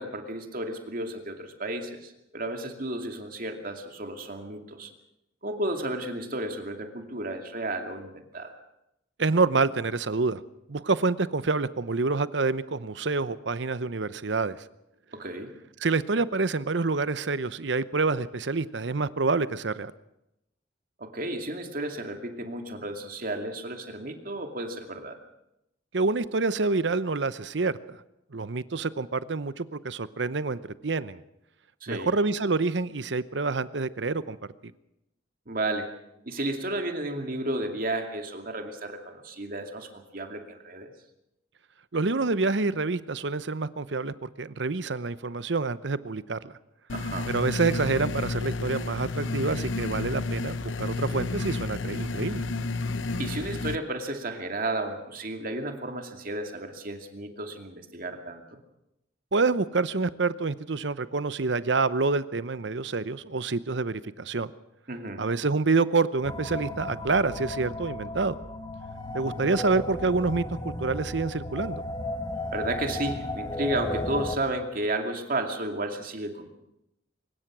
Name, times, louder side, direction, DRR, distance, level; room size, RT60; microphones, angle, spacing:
voice 1, 0.0-4.9 5.4-8.6 15.1-15.5 21.0-25.2 31.8-32.1 35.5-35.9 36.2-40.9 46.9-47.3 53.2-58.6 64.9-65.2 72.5-76.6, right 1 dB, 50° right, 5 dB, 2.5 m, -33 dB
voice 2, 9.2-10.4 10.7-14.6 15.8-19.9 25.9-28.0 28.3-31.2 31.9-34.4 41.9-46.5 47.3-52.4 59.3-64.5 65.2-68.4 69.1-71.8, right 3 dB, 65° right, 15 dB, 0.8 m, -27 dB
sound 1, 46.9-53.8, left 3 dB, 85° left, 0.9 m, -31 dB
sound 2, 66.2-74.4, left 1 dB, 20° left, 1.6 m, -34 dB
23.5 x 20.5 x 6.1 m, 0.84 s
head